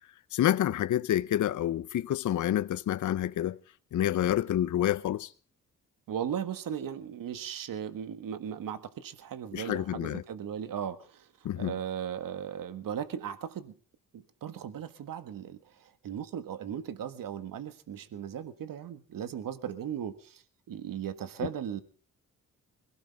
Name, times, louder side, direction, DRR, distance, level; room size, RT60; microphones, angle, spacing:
voice 1, 0.3-3.6 3.9-5.3 9.5-10.2 11.4-11.7, left 12 dB, 60° left, 0.7 m, -28 dB
voice 2, 6.1-11.3 11.6-13.7 14.1-21.8, right 9 dB, 70° right, 1.6 m, -37 dB
22.5 x 17.0 x 3.5 m
cardioid pair, 65°, 34 cm